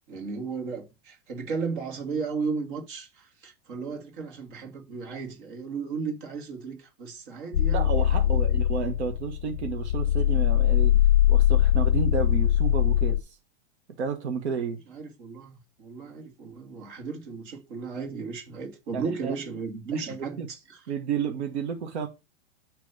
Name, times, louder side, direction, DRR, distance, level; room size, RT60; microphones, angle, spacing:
voice 1, 0.1-8.6 14.9-20.8, right 5 dB, 50° right, 2.3 m, -35 dB
sound 1, 7.5-13.2, left 11 dB, 50° left, 0.6 m, -22 dB
voice 2, 7.7-11.0 11.3-13.4 14.0-14.8 18.9-19.3 19.9-20.5 20.9-22.1, right 6 dB, 85° right, 1.3 m, -31 dB
6.3 x 3.4 x 5.7 m
supercardioid pair, 170°, 33 cm